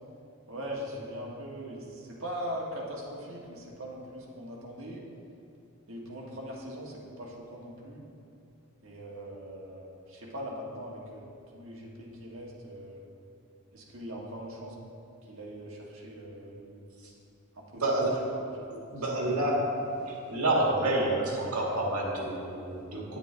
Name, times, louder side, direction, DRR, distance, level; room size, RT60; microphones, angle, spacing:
voice 1, 0.5-5.0 5.9-8.1 8.8-11.3 11.5-13.0 13.7-14.7 15.2-16.8 17.5-18.0 18.3-18.5 19.1-19.5, equal, 65° right, -3 dB, 1.5 m, -41 dB
voice 2, 17.7-18.1 18.9-23.2, right 1 dB, 85° right, -2 dB, 1.7 m, -29 dB
9.1 x 8.8 x 3.3 m, 2.6 s
head